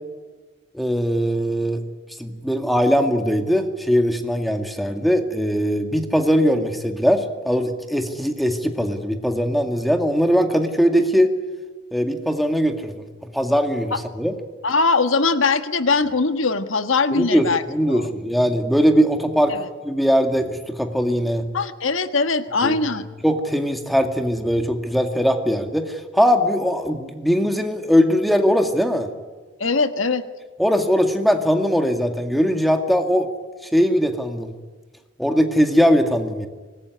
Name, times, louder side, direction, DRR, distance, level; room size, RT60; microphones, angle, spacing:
voice 1, 0.7-1.8 2.2-11.3 11.9-13.1 13.3-14.3 17.1-19.5 19.8-21.5 22.6-22.8 23.2-29.1 30.6-33.3 33.6-34.5 35.2-36.5, equal, ahead, 5 dB, 2.1 m, -20 dB
voice 2, 14.6-17.6 17.9-18.1 19.5-19.7 21.5-23.1 29.6-30.2, left 4 dB, 80° left, 10 dB, 1.5 m, -21 dB
25.0 x 20.5 x 9.7 m, 1.3 s
head